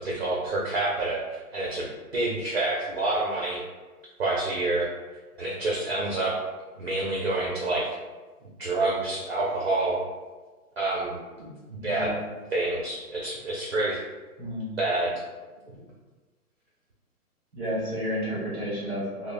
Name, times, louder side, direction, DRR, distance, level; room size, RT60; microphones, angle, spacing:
voice 1, 0.0-1.9 2.1-3.6 4.2-4.9 5.4-6.3 6.7-7.9 8.6-10.0 10.8-12.1 12.5-14.0 14.8-15.1, right 2 dB, 45° right, -4 dB, 0.5 m, -28 dB
voice 2, 11.8-12.2 14.4-14.7 17.5-19.3, equal, 15° right, -7 dB, 1.0 m, -31 dB
4.9 x 2.0 x 2.5 m, 1.3 s
hypercardioid pair, 170°, 46 cm